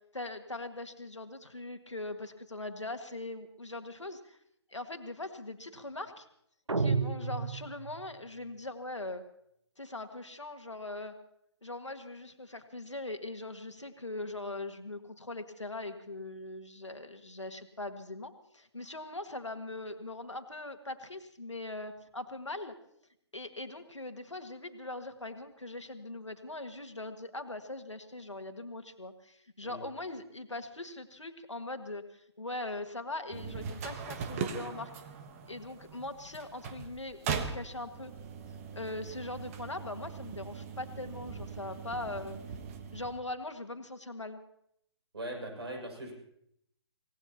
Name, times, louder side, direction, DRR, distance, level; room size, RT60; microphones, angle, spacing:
voice 1, 0.1-4.4 4.7-6.3 6.8-9.2 9.8-11.2 11.6-22.7 23.3-34.9 35.5-38.1 38.7-42.4 42.9-44.4, left 2 dB, 90° left, 7 dB, 1.8 m, -41 dB
sound 1, 6.7-8.1, right 4 dB, 90° right, 0.7 m, -31 dB
sound 2, 33.3-43.2, right 6 dB, 30° right, 1.3 m, -40 dB
voice 2, 45.1-46.1, right 1 dB, 65° right, 2 dB, 6.6 m, -40 dB
26.0 x 18.0 x 2.9 m, 0.74 s
figure-of-eight pair, 140°, 15 cm